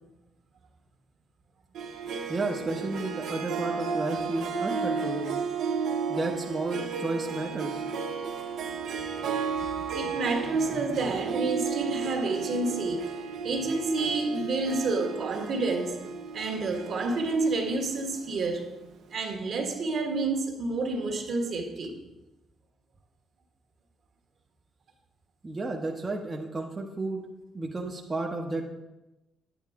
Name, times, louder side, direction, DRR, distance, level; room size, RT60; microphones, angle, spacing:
Harp, 1.8-18.5, right 5 dB, 75° right, 0.9 m, -33 dB
voice 1, 2.3-5.4 6.1-7.8 25.4-27.2 27.5-28.7, right 2 dB, 25° right, 0.9 m, -32 dB
voice 2, 9.9-16.1 16.3-18.7 19.1-22.0, right 3 dB, 60° right, 1.5 m, -29 dB
9.7 x 8.5 x 3.6 m
cardioid pair, 90°, 0 cm